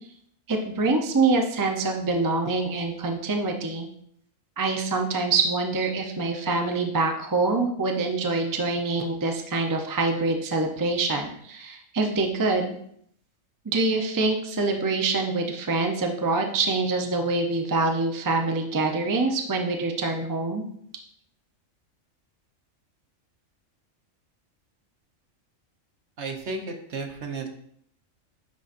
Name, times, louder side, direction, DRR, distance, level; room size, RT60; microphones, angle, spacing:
voice 1, 0.5-3.9 4.6-12.8 13.6-20.6, right 3 dB, 25° right, 2 dB, 0.4 m, -25 dB
voice 2, 26.2-27.5, right 3 dB, 60° right, 3 dB, 1.1 m, -33 dB
10.0 x 3.9 x 2.5 m, 0.67 s
omnidirectional pair, 1.4 m